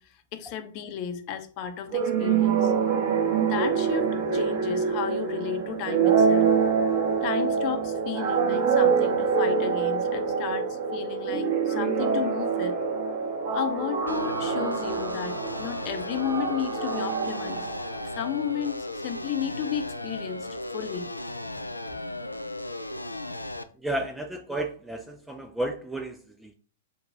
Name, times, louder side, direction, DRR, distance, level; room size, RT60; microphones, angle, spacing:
voice 1, 0.0-2.7 3.4-6.5 7.2-12.7 13.5-17.7 18.0-20.5 20.7-21.1, left 8 dB, 35° left, 7 dB, 0.7 m, -33 dB
sound 1, 1.9-18.3, right 6 dB, 40° right, 1.4 m, -25 dB
sound 2, 14.1-23.6, left 1 dB, 85° left, 0.3 m, -36 dB
voice 2, 23.7-26.5, right 1 dB, 5° right, 4 dB, 0.4 m, -32 dB
4.8 x 2.3 x 3.9 m, 0.41 s
figure-of-eight pair, 105°, 0 cm